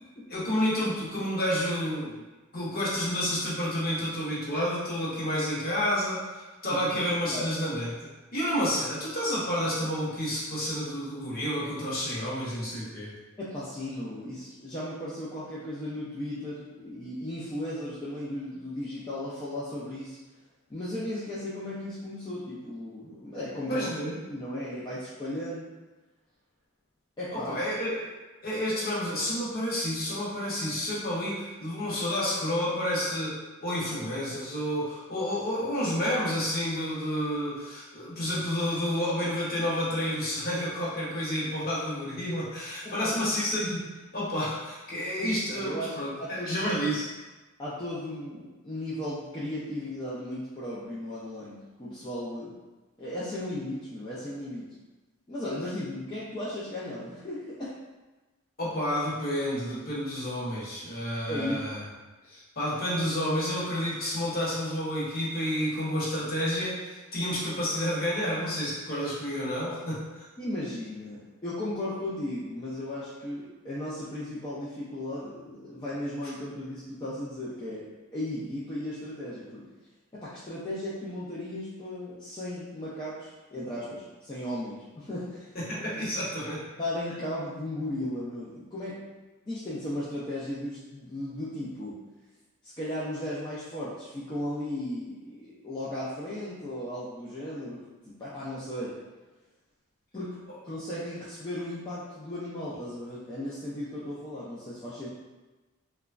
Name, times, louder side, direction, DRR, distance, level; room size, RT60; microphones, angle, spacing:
voice 1, 0.3-2.2 2.5-13.1 23.7-24.1 27.3-28.0 28.4-47.1 58.6-61.8 62.3-70.3 85.5-86.6, equal, 40° left, -7 dB, 0.8 m, -30 dB
voice 2, 6.8-7.5 13.4-20.2 20.7-23.9 24.3-25.6 27.2-27.6 42.8-43.4 45.2-46.6 47.6-52.5 53.0-54.7 55.3-57.7 61.3-61.6 70.4-77.9 78.1-79.7 80.1-85.4 86.8-89.0 89.5-92.0 92.8-99.0 100.1-100.3 100.6-105.1, left 1 dB, 20° left, -10 dB, 0.4 m, -36 dB
2.9 x 2.2 x 2.4 m, 1.2 s
head